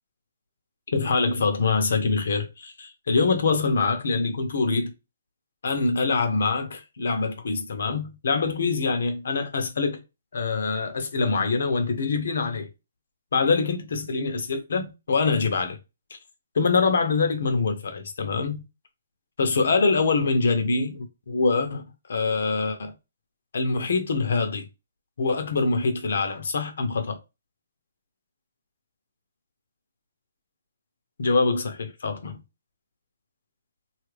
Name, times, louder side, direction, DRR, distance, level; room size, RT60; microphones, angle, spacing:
voice 1, 0.9-4.9 5.6-10.0 10.3-12.7 13.3-15.8 16.5-18.6 19.4-21.8 22.1-22.9 23.5-24.7 25.2-27.2 31.2-32.3, left 4 dB, 70° left, 0.7 m, -24 dB
2.8 x 2.4 x 3.2 m
hypercardioid pair, 150°, 0 cm